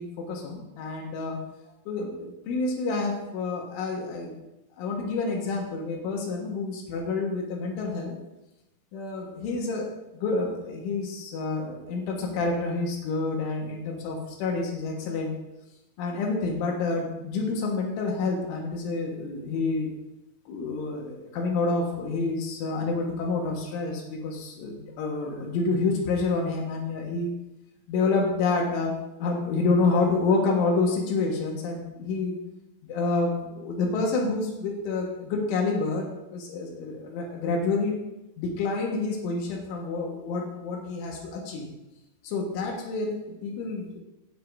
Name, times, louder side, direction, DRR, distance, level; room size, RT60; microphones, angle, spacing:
voice 1, 0.0-1.4 1.9-4.4 4.8-8.1 8.9-9.9 10.1-15.3 16.0-19.9 20.5-27.3 27.9-28.9 29.2-32.3 32.9-38.0 38.4-41.7 42.2-44.0, left 3 dB, 75° left, 0 dB, 3.9 m, -28 dB
17.5 x 9.9 x 2.7 m, 0.93 s
omnidirectional pair, 5.6 m